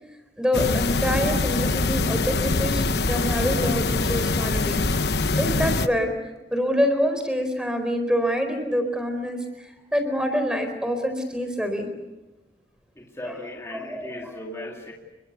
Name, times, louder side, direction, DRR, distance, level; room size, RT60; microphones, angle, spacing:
voice 1, 0.4-4.8 5.4-6.1 6.5-11.9 13.3-13.4 13.7-14.3, equal, 5° right, 7 dB, 4.4 m, -26 dB
sound 1, 0.5-5.9, left 3 dB, 70° left, 1.1 m, -24 dB
voice 2, 13.0-14.9, left 1 dB, 15° left, 0 dB, 2.5 m, -37 dB
30.0 x 22.5 x 8.3 m, 1.0 s
head